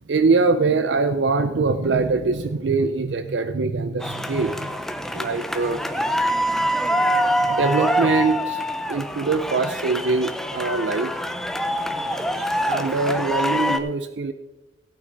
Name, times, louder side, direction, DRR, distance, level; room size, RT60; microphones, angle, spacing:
voice 1, 0.1-4.8 5.1-5.8 7.3-11.1 12.4-14.3, right 4 dB, 65° right, 10 dB, 0.5 m, -23 dB
sound 1, 4.0-13.8, equal, ahead, 0.6 m, -25 dB
16.5 x 9.0 x 3.9 m, 1.1 s
head